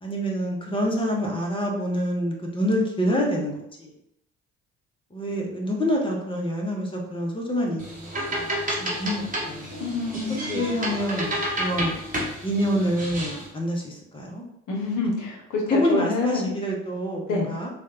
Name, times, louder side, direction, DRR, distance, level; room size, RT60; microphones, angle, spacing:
voice 1, 0.0-3.9 5.1-9.8 10.5-12.0 12.4-14.4 15.7-17.7, equal, 15° left, -1 dB, 0.8 m, -27 dB
sound 1, 7.8-13.5, right 1 dB, 20° right, 1.0 m, -31 dB
voice 2, 9.7-10.6 14.7-16.5 17.3-17.5, left 3 dB, 50° left, -1 dB, 1.0 m, -27 dB
3.2 x 2.3 x 2.8 m, 0.81 s
figure-of-eight pair, 50°, 39 cm